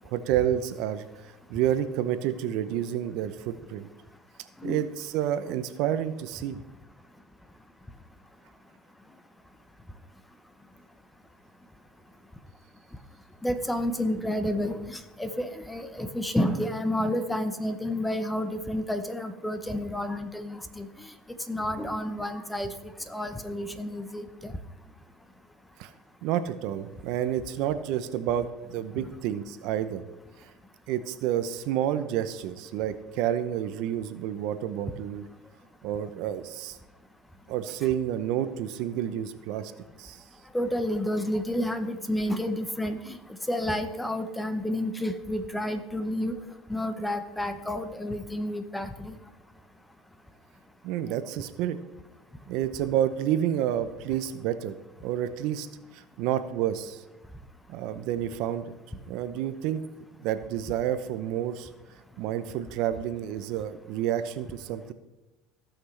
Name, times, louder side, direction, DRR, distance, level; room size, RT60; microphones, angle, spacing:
voice 1, 0.0-1.1 1.5-3.9 4.6-6.6 25.8-25.9 26.2-30.0 30.9-35.2 35.8-36.8 37.5-39.7 40.0-40.2 50.8-51.8 52.5-54.7 55.0-55.7 55.9-57.0 57.7-58.7 59.1-59.8 60.2-61.7 62.2-64.9, right 11 dB, 65° right, 11 dB, 0.6 m, -29 dB
voice 2, 13.4-21.1 21.5-22.7 23.1-24.5 29.0-29.1 40.5-43.2 43.5-46.4 46.7-49.1, left 1 dB, 5° left, 10 dB, 0.7 m, -30 dB
16.0 x 5.9 x 3.3 m, 1.0 s
supercardioid pair, 115°, 0 cm